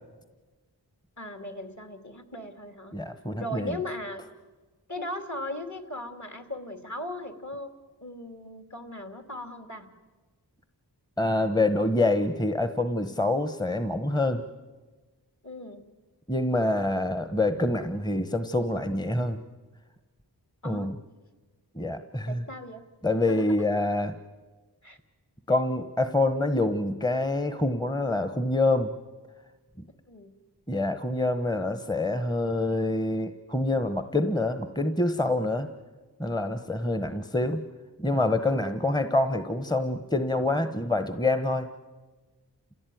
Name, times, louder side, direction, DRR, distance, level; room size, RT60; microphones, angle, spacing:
voice 1, 1.2-3.0 3.4-4.2 4.9-7.7 8.0-9.9 15.4-15.8 20.6-20.9 22.3-22.8 23.3-23.4 24.8-25.0 30.1-30.3, left 1 dB, 45° left, 6 dB, 3.0 m, -37 dB
voice 2, 2.9-3.8 11.2-14.4 16.3-19.4 20.6-21.0 21.7-22.4 23.0-24.1 25.5-28.9 30.7-35.7 36.2-37.6 38.0-41.7, left 2 dB, 10° left, 9 dB, 1.2 m, -26 dB
29.5 x 16.0 x 9.3 m, 1.3 s
wide cardioid pair, 40°, 40 cm